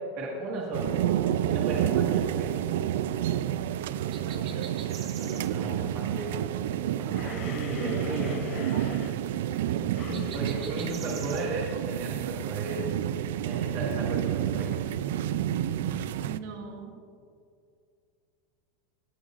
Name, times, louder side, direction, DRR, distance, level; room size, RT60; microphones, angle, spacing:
voice 1, 0.1-1.0 1.5-2.5 5.2-6.4 7.0-8.4 10.3-12.9 13.4-14.7, right 2 dB, 50° right, -3 dB, 1.7 m, -35 dB
sound 1, 0.7-16.4, right 11 dB, 85° right, 0.3 m, -29 dB
sound 2, 4.1-5.5 10.1-11.4, right 7 dB, 30° right, 0.9 m, -44 dB
voice 2, 4.2-4.7 16.2-16.9, right 5 dB, 70° right, 0 dB, 1.9 m, -42 dB
sound 3, 7.1-11.8, left 7 dB, 30° left, 0.5 m, -41 dB
17.5 x 9.8 x 2.5 m, 2.3 s
supercardioid pair, 180°, 0 cm